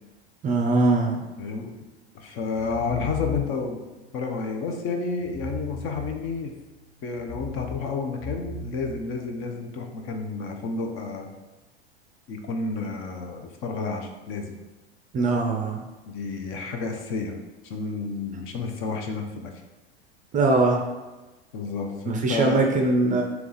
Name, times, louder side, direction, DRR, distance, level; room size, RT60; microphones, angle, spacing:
voice 1, 0.4-1.2 15.1-15.8 20.3-20.8 22.1-23.2, right 3 dB, 25° right, 2 dB, 0.5 m, -21 dB
voice 2, 1.4-1.7 2.1-3.8 4.1-6.5 7.0-11.3 12.3-14.6 16.1-17.4 17.6-19.5 21.5-22.6, left 4 dB, 40° left, 4 dB, 0.7 m, -30 dB
sound 1, 2.7-3.8 5.2-6.6 7.1-9.6, left 4 dB, 20° left, 1.1 m, -36 dB
3.4 x 2.9 x 3.9 m, 1.1 s
hypercardioid pair, 95°, 33 cm